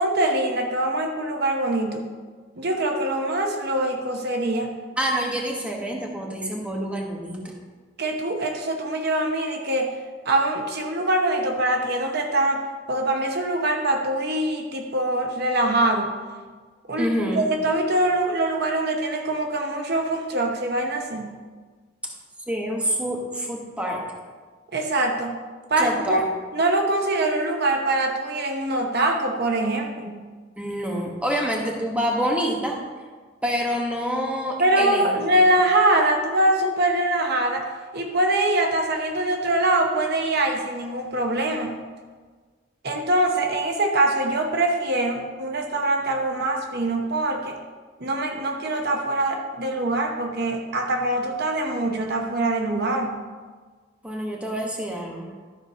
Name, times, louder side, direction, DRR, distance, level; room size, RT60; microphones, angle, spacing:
voice 1, 0.0-2.1 2.6-4.7 8.0-9.9 10.2-12.6 12.9-16.1 16.9-21.3 24.7-25.4 25.7-26.2 26.5-30.2 34.6-37.7 37.9-41.7 42.8-47.6 48.0-53.1, right 1 dB, 55° right, 3 dB, 0.9 m, -23 dB
voice 2, 5.0-7.5 17.0-17.5 22.0-22.1 22.5-24.0 25.8-26.2 30.6-32.8 33.4-35.3 54.0-55.3, equal, 5° right, -1 dB, 1.3 m, -27 dB
12.5 x 4.6 x 5.5 m, 1.5 s
head